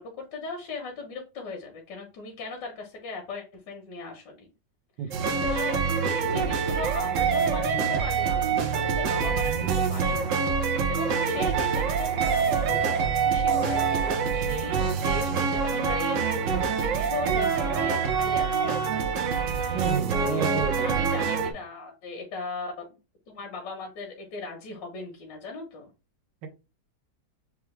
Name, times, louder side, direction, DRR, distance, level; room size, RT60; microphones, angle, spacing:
voice 1, 0.0-4.5 5.1-18.6 18.9-19.2 19.4-19.6 20.1-23.0 23.3-25.9, left 3 dB, 80° left, 1 dB, 1.7 m, -38 dB
sound 1, 5.1-21.5, right 6 dB, 65° right, 0.8 m, -25 dB
voice 2, 19.7-21.2 26.4-26.5, right 7 dB, 80° right, 6 dB, 1.6 m, -31 dB
6.7 x 2.3 x 3.2 m, 0.29 s
omnidirectional pair, 1.9 m